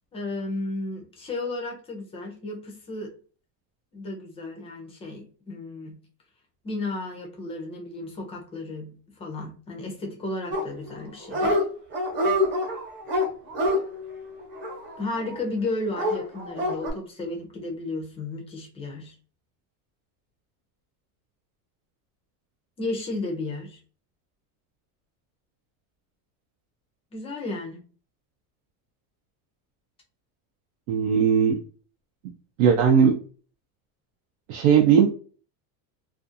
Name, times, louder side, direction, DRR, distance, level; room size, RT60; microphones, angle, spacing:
voice 1, 0.1-3.1 3.9-6.0 6.6-11.6 15.0-19.2 22.8-23.8 27.1-27.8, left 2 dB, 15° left, 2 dB, 0.4 m, -33 dB
Dog, 10.5-11.0 11.3-11.6 11.9-15.3 15.9-16.9, left 1 dB, 25° right, 0.7 m, -26 dB
voice 2, 30.9-31.6 32.6-33.2 34.5-35.1, right 7 dB, 85° right, 2 dB, 0.6 m, -18 dB
2.5 x 2.3 x 2.6 m, 0.39 s
cardioid pair, 165°, 42 cm